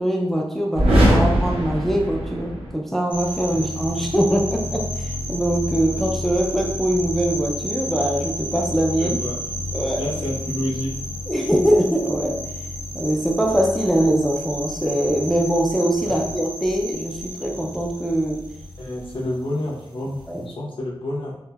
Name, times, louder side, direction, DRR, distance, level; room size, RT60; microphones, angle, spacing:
voice 1, 0.0-9.2 9.7-10.0 11.3-12.4 12.9-18.5 20.3-20.5, right 1 dB, 5° left, 0 dB, 0.3 m, -22 dB
sound 1, 0.7-2.7, equal, 80° right, 0.7 m, -19 dB
sound 2, 3.1-20.4, equal, 50° right, 0.5 m, -32 dB
voice 2, 9.0-9.4 10.0-10.9 16.0-16.2 18.8-21.3, left 1 dB, 60° left, -4 dB, 0.7 m, -29 dB
3.3 x 2.0 x 2.2 m, 0.79 s
wide cardioid pair, 80°, 10 cm